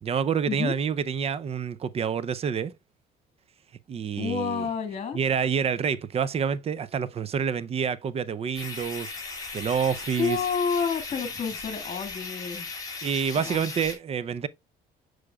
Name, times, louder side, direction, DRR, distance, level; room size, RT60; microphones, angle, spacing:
voice 1, 0.0-2.7 3.9-4.7 5.1-9.1 9.5-10.4 13.0-14.5, right 7 dB, 35° right, 0.5 m, -27 dB
voice 2, 4.2-5.2 10.2-12.7 13.4-13.6, left 6 dB, 40° left, 1.9 m, -29 dB
sound 1, 8.5-13.9, left 4 dB, 20° left, 2.8 m, -37 dB
6.6 x 6.2 x 2.3 m
cardioid pair, 110°, 17 cm